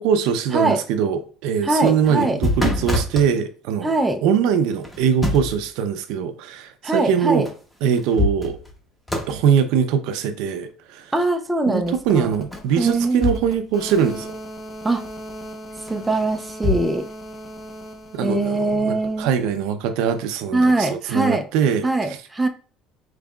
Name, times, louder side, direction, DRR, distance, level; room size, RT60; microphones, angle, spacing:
voice 1, 0.0-3.9 4.2-7.5 7.8-8.6 9.3-11.0 11.7-14.3 18.1-21.9, right 7 dB, 75° right, 0.6 m, -22 dB
voice 2, 1.6-2.4 3.8-4.2 6.8-7.5 11.1-12.3 12.8-13.3 14.8-15.0 15.9-17.1 18.2-19.3 20.5-21.4 21.8-22.5, right 2 dB, 10° right, 0.4 m, -22 dB
sound 1, 1.7-3.3 4.8-5.6 7.5-7.6 7.9-8.8 9.1-9.4 12.5-13.6 13.9-14.0 15.9-16.8, left 2 dB, 10° left, 1.0 m, -25 dB
sound 2, 11.8-19.7, equal, 30° left, 0.8 m, -39 dB
5.2 x 3.2 x 2.3 m
cardioid pair, 140°, 0 cm